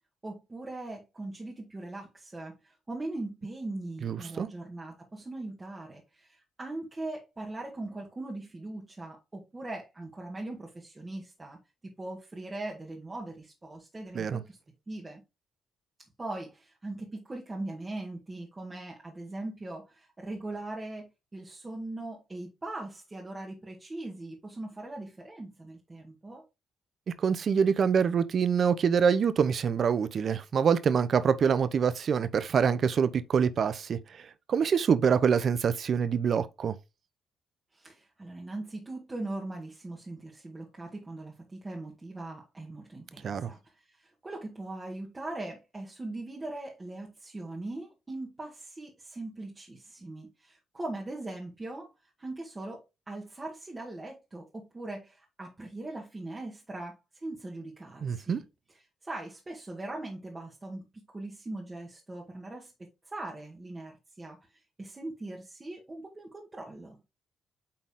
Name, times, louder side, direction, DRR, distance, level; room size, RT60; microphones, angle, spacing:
voice 1, 0.2-11.6 12.0-14.6 14.9-15.2 16.2-26.4 37.7-43.6 43.9-51.9 52.2-58.4 59.0-62.7 63.1-67.0, right 2 dB, 20° right, 1.9 m, -40 dB
voice 2, 4.0-4.5 14.1-14.4 27.1-36.7 43.2-43.5 58.0-58.4, right 6 dB, 55° right, 0.8 m, -25 dB
8.7 x 4.0 x 3.8 m
cardioid pair, 90°, 0 cm